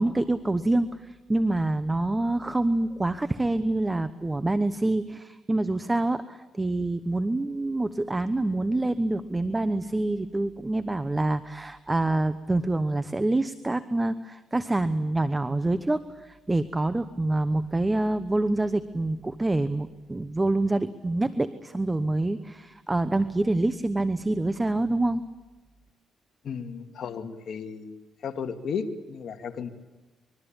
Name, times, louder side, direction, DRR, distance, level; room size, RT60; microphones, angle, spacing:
voice 1, 0.0-25.2, right 2 dB, 15° right, 13 dB, 1.0 m, -26 dB
voice 2, 26.4-28.0 28.2-29.7, left 6 dB, 60° left, 5 dB, 2.1 m, -34 dB
25.0 x 23.0 x 8.9 m, 1.2 s
cardioid pair, 90°, 0 cm